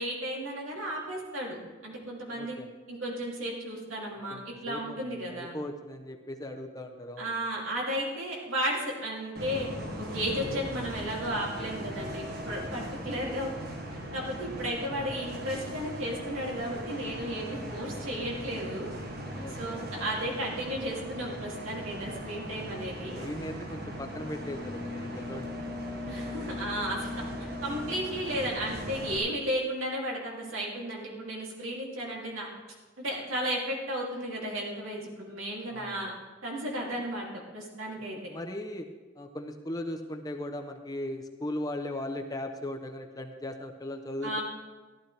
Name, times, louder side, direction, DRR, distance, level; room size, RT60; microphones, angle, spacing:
voice 1, 0.0-2.6 2.9-5.6 7.2-9.7 10.0-13.5 14.1-18.9 19.6-23.2 26.1-27.1 27.4-32.5 33.0-36.1 36.4-38.3 44.2-44.4, equal, 85° right, -3 dB, 2.9 m, -34 dB
voice 2, 2.3-2.7 4.3-7.3 19.3-19.9 23.2-25.5 35.7-36.1 38.3-38.9 39.2-44.4, left 1 dB, 20° left, 4 dB, 0.7 m, -38 dB
Bus, 9.3-29.2, equal, 50° right, 1.5 m, -38 dB
14.5 x 12.0 x 3.4 m, 1.3 s
head